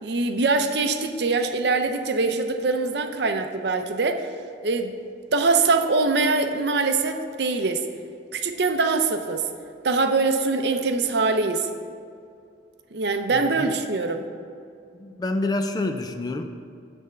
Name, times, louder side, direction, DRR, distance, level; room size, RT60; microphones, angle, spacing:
voice 1, 0.0-4.2 4.6-4.9 5.3-7.9 8.3-9.5 9.8-11.7 12.9-14.2, right 3 dB, 60° right, 6 dB, 0.6 m, -23 dB
voice 2, 13.3-13.7 14.9-16.4, left 2 dB, 20° left, 6 dB, 0.4 m, -28 dB
9.4 x 3.5 x 6.9 m, 2.4 s
head